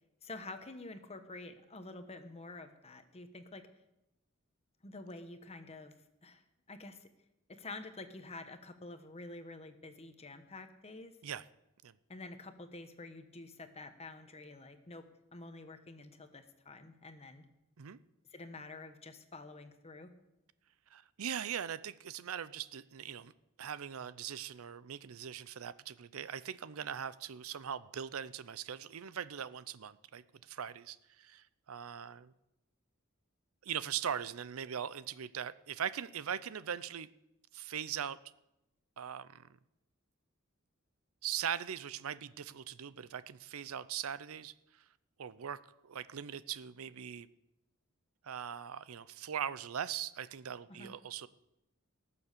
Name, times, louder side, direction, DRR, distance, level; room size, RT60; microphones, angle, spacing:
voice 1, 0.2-3.7 4.8-5.9 6.2-6.4 6.7-7.1 7.5-11.2 12.1-17.5 18.3-20.1 50.7-50.9, left 2 dB, 30° left, 9 dB, 1.1 m, -48 dB
voice 2, 20.9-23.3 23.6-32.3 33.6-37.1 37.5-38.2 39.0-39.5 41.2-44.5 45.2-47.3 48.2-51.3, right 8 dB, 85° right, 17 dB, 0.5 m, -40 dB
18.5 x 7.1 x 6.7 m, 0.89 s
head